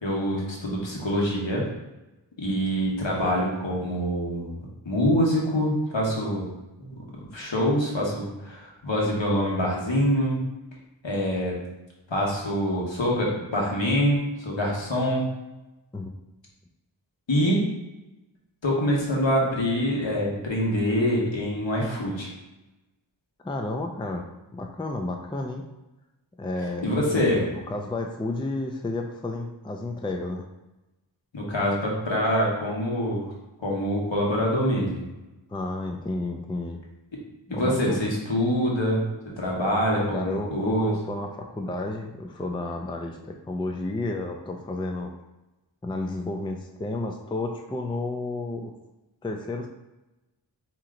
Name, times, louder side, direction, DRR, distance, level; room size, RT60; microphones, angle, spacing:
voice 1, 0.0-1.6 2.4-6.5 6.8-6.9 7.3-10.4 11.0-11.6 12.1-15.3 17.3-17.7 18.6-22.3 26.8-27.4 31.3-33.3 33.6-35.1 37.5-40.9, equal, 70° left, -3 dB, 1.3 m, -25 dB
voice 2, 23.4-24.3 24.5-25.7 26.4-27.2 27.5-30.4 35.5-36.8 37.5-38.0 40.0-45.1 45.8-48.7 49.2-49.7, left 2 dB, 10° left, 3 dB, 0.4 m, -31 dB
4.4 x 3.0 x 3.7 m, 1.0 s
wide cardioid pair, 45°, 46 cm